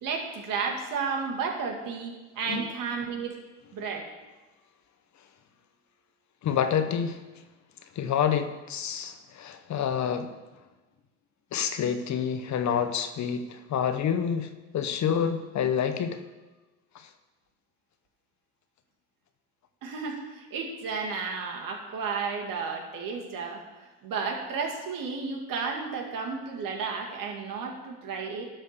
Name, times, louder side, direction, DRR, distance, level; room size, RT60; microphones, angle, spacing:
voice 1, 0.0-3.4 3.7-4.1 19.8-23.6 24.0-28.5, right 5 dB, 65° right, 1 dB, 2.1 m, -32 dB
voice 2, 6.4-7.2 8.0-10.3 11.5-16.2, left 8 dB, 50° left, 9 dB, 0.9 m, -28 dB
12.0 x 4.6 x 6.7 m, 1.2 s
supercardioid pair, 75°, 36 cm